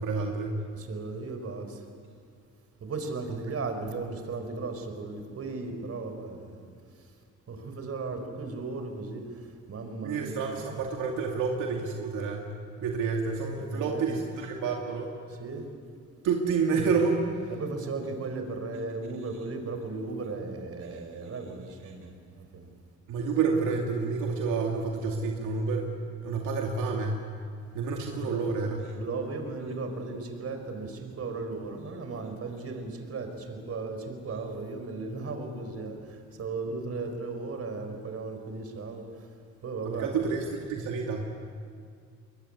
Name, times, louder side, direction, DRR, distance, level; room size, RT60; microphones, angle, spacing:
voice 1, 0.0-0.6 3.5-3.6 10.0-15.1 16.2-17.2 20.9-21.0 21.8-21.9 23.1-25.9 26.2-27.2 27.7-28.9 36.7-36.9 39.8-41.2, right 5 dB, 85° right, 0 dB, 2.4 m, -29 dB
voice 2, 0.7-1.8 2.8-6.6 7.5-9.4 9.7-10.5 13.7-14.1 15.4-15.6 17.5-22.7 28.1-28.5 28.9-39.1 39.6-40.3, right 3 dB, 50° right, 6 dB, 4.4 m, -36 dB
22.5 x 22.0 x 9.8 m, 2.2 s
cardioid pair, 90°, 30 cm